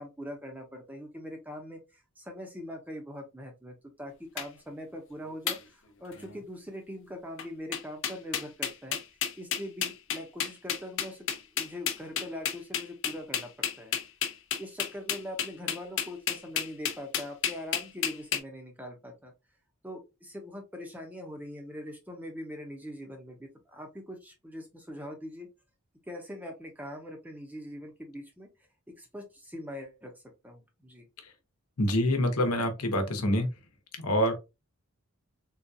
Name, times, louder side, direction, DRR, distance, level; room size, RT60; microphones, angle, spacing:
voice 1, 0.0-9.0 9.4-11.3 11.5-13.5 13.8-13.9 14.6-19.3 19.8-25.5 26.1-28.5 29.0-30.1 30.4-31.1, left 1 dB, 5° right, 0.6 m, -42 dB
sound 1, 4.4-4.5 5.5-5.6 6.1-6.4 7.4-7.5 7.7-18.4, left 9 dB, 55° left, 0.6 m, -31 dB
voice 2, 31.8-33.5 33.9-34.3, left 1 dB, 80° left, 0.9 m, -26 dB
3.8 x 2.3 x 2.6 m
head